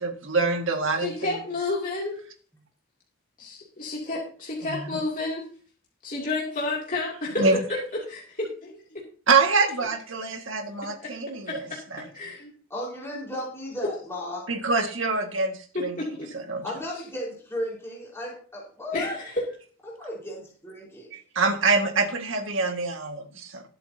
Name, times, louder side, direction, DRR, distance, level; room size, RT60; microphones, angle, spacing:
voice 1, 0.0-1.4 4.7-4.9 7.4-7.6 9.3-11.6 11.9-12.0 14.5-16.0 16.3-16.6 21.1-23.6, right 4 dB, 70° right, 5 dB, 2.0 m, -25 dB
voice 2, 1.0-2.2 3.4-5.4 6.0-7.4 8.1-9.0 11.0-11.1 11.5-11.6 12.1-12.5 15.7-16.4 18.9-19.4, left 2 dB, 40° left, -4 dB, 2.8 m, -31 dB
voice 3, 12.7-14.5 16.6-19.2 19.8-21.1, left 1 dB, 10° left, -5 dB, 4.7 m, -35 dB
21.0 x 7.8 x 2.9 m, 0.42 s
head